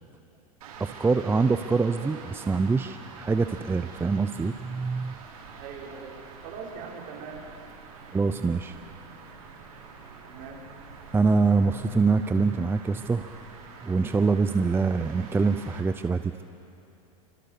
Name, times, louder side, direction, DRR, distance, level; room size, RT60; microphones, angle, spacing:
sound 1, 0.6-15.8, right 5 dB, 85° right, 5.5 m, -46 dB
voice 1, 0.8-5.2 8.1-8.7 11.1-13.4 13.8-16.4, right 4 dB, 10° right, 10 dB, 0.6 m, -25 dB
voice 2, 5.5-7.4 10.2-10.6, right 5 dB, 50° right, -1 dB, 5.5 m, -41 dB
29.0 x 25.5 x 6.8 m, 2.8 s
supercardioid pair, 115°, 19 cm